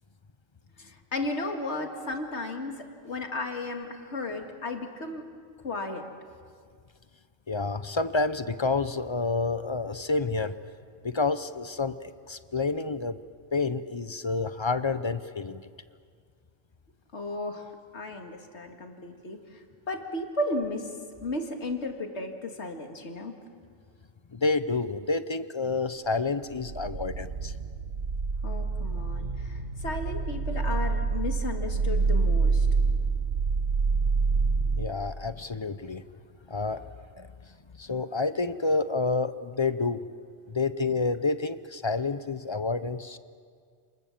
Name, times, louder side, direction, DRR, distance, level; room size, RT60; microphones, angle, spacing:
voice 1, 0.8-2.7 3.0-5.2 5.6-6.1 17.1-21.0 21.2-23.3 28.4-32.7, left 2 dB, 75° left, 4 dB, 2.3 m, -34 dB
voice 2, 7.5-10.6 11.0-13.2 13.5-15.7 24.3-27.5 34.8-36.0 36.5-36.9 37.2-37.3 37.8-40.1 40.5-43.2, left 3 dB, 30° left, 13 dB, 0.6 m, -29 dB
sound 1, 26.5-34.9, right 4 dB, 55° right, 1.3 m, -27 dB
29.0 x 20.5 x 7.3 m, 2.1 s
omnidirectional pair, 1.2 m